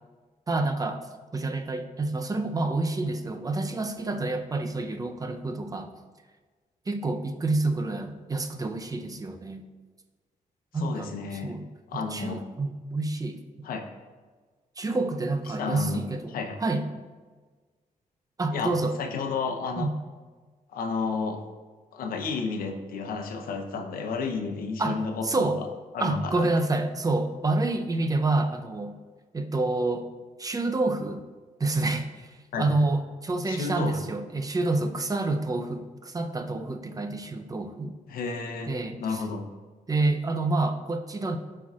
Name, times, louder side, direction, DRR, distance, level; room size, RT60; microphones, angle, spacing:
voice 1, 0.5-1.1 1.3-5.9 6.9-9.7 10.7-11.7 11.9-13.7 14.8-16.8 18.4-19.0 19.8-19.9 24.8-25.6 26.0-29.0 29.3-30.1 30.4-31.2 31.6-37.9 38.7-39.2 39.9-41.4, right 2 dB, 25° right, 6 dB, 0.6 m, -28 dB
voice 2, 10.7-11.6 11.9-12.4 13.6-13.8 15.6-16.0 16.3-16.6 18.5-19.9 20.7-21.4 21.9-25.7 25.9-26.5 32.5-32.7 33.5-34.0 38.1-38.7 39.0-39.4, left 4 dB, 85° left, 4 dB, 0.8 m, -31 dB
11.5 x 4.5 x 2.4 m, 1.4 s
cardioid pair, 95°, 14 cm